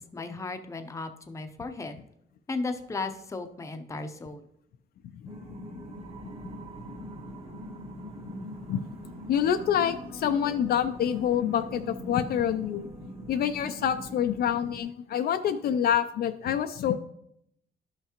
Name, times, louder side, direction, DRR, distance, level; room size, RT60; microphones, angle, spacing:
voice 1, 0.1-2.0 2.5-4.5, left 3 dB, 15° left, 7 dB, 0.6 m, -35 dB
sound 1, 5.3-14.8, equal, 35° right, 1.4 m, -42 dB
voice 2, 9.3-12.9 13.3-17.0, left 9 dB, 60° left, 8 dB, 0.4 m, -27 dB
11.5 x 5.7 x 2.9 m, 0.75 s
cardioid pair, 120°, 18 cm